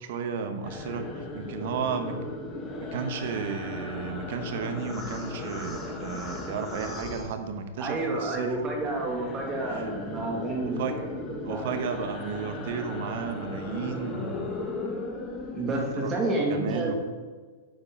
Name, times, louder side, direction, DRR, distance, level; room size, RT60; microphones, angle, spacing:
voice 1, 0.0-2.2 2.8-8.6 9.7-9.8 10.6-11.0 11.4-14.8 15.7-16.1 16.5-16.9, right 5 dB, 60° right, 7 dB, 1.1 m, -33 dB
sound 1, 0.6-8.0 8.2-16.3, left 2 dB, 25° left, 1.4 m, -37 dB
voice 2, 7.8-11.7 15.5-17.0, right 2 dB, 25° right, 0 dB, 2.2 m, -30 dB
9.0 x 5.2 x 5.4 m, 1.4 s
hypercardioid pair, 110°, 0 cm